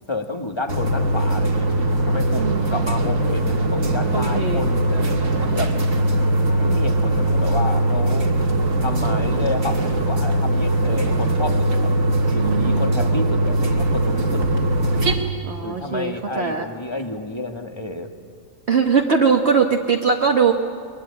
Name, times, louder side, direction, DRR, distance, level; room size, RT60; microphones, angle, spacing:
voice 1, 0.1-1.7 2.0-5.7 6.6-8.3 8.8-11.9 12.3-14.4 15.6-18.1, left 2 dB, 20° left, 5 dB, 1.7 m, -30 dB
sound 1, 0.7-15.1, right 1 dB, 65° right, 2.6 m, -20 dB
voice 2, 2.4-2.7 4.1-4.6 12.4-12.9 15.4-16.7 18.7-20.5, right 5 dB, 50° right, 2 dB, 1.5 m, -20 dB
22.5 x 22.0 x 9.8 m, 2.1 s
omnidirectional pair, 1.5 m